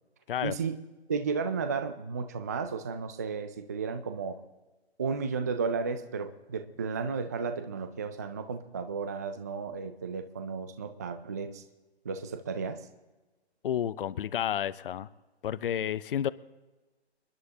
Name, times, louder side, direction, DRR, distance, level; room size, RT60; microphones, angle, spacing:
voice 1, 0.4-0.8 1.1-4.4 5.0-11.6 12.0-12.8, right 5 dB, 15° right, 0.4 m, -33 dB
voice 2, 13.6-15.1 15.4-16.3, left 10 dB, 55° left, 0.6 m, -30 dB
28.5 x 11.0 x 2.8 m
figure-of-eight pair, 140°, 33 cm